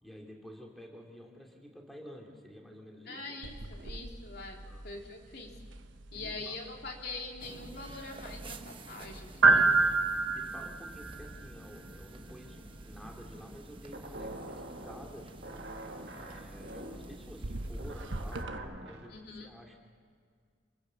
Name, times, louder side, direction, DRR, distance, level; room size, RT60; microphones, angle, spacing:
voice 1, 0.0-3.4 4.6-4.8 6.1-6.7 9.8-15.7 16.2-19.8, equal, ahead, -1 dB, 2.7 m, -51 dB
voice 2, 3.1-5.5 6.1-9.8 19.1-19.5, left 3 dB, 55° left, 1 dB, 3.3 m, -43 dB
sound 1, 3.4-18.6, right 3 dB, 75° right, 1.1 m, -33 dB
sound 2, 7.4-18.4, right 2 dB, 25° right, 1.0 m, -50 dB
sound 3, 13.9-19.1, right 1 dB, 55° right, 2.7 m, -45 dB
28.0 x 16.0 x 7.0 m, 2.1 s
head